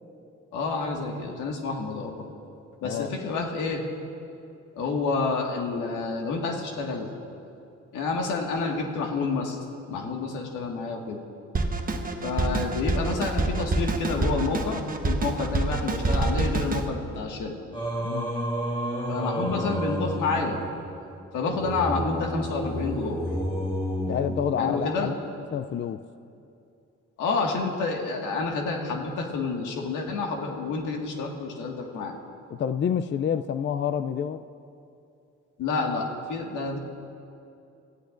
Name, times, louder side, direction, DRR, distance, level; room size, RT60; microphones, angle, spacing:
voice 1, 0.5-2.1 2.8-3.8 4.8-7.1 7.9-9.6 9.9-11.2 12.2-17.6 19.1-20.6 21.3-23.2 24.6-25.1 27.2-32.2 35.6-36.8, left 4 dB, 85° left, 1 dB, 1.9 m, -29 dB
Drum kit, 11.5-16.9, right 2 dB, 30° right, 1.2 m, -26 dB
Singing, 17.7-25.1, equal, 20° left, 2.0 m, -31 dB
voice 2, 24.1-25.2 25.5-26.0 32.5-34.4, left 8 dB, 40° left, 11 dB, 0.4 m, -28 dB
27.0 x 15.0 x 2.6 m, 2.6 s
cardioid pair, 90°, 30 cm